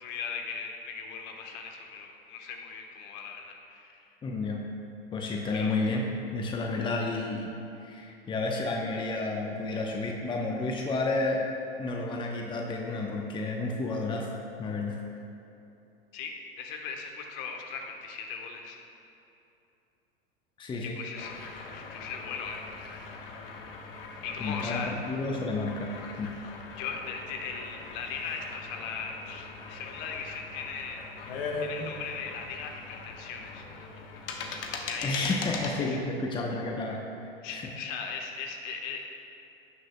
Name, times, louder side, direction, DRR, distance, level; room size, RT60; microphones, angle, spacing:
voice 1, 0.0-4.0 5.5-5.8 16.1-18.8 20.8-22.6 22.8-23.2 24.2-24.9 26.7-33.6 34.7-35.4 35.8-36.0 37.4-39.0, left 6 dB, 50° left, 3 dB, 1.2 m, -39 dB
voice 2, 4.2-4.6 5.1-6.0 6.3-7.5 7.8-11.4 11.8-14.3 14.6-15.0 20.6-21.0 24.4-26.3 35.0-37.0 37.5-37.6, left 3 dB, 15° left, 0 dB, 0.8 m, -31 dB
roulette casino evian, 21.1-35.8, left 4 dB, 65° left, 1.2 m, -41 dB
16.5 x 6.4 x 2.2 m, 2.8 s
figure-of-eight pair, 90°, 30 cm